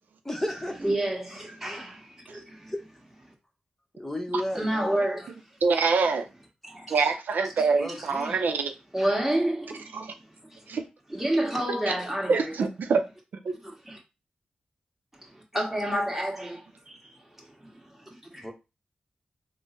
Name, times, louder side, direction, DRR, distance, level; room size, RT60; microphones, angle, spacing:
voice 1, 0.2-0.8 1.6-1.8 2.7-2.8 4.0-5.0 7.8-8.4 18.4-18.5, left 1 dB, 10° left, 0.9 m, -33 dB
voice 2, 0.8-2.7 4.5-5.3 6.6-6.9 8.3-8.4 8.9-10.1 10.5-10.6 11.1-12.5 13.8-14.0 15.2-17.5 18.0-18.1 18.3-18.4, right 1 dB, 10° right, 1.5 m, -29 dB
voice 3, 5.6-6.3 6.9-8.7 9.9-10.1 10.7-10.8 12.3-13.0 13.4-13.6, right 4 dB, 75° right, 0.4 m, -25 dB
3.6 x 2.0 x 3.8 m
cardioid pair, 50°, 3 cm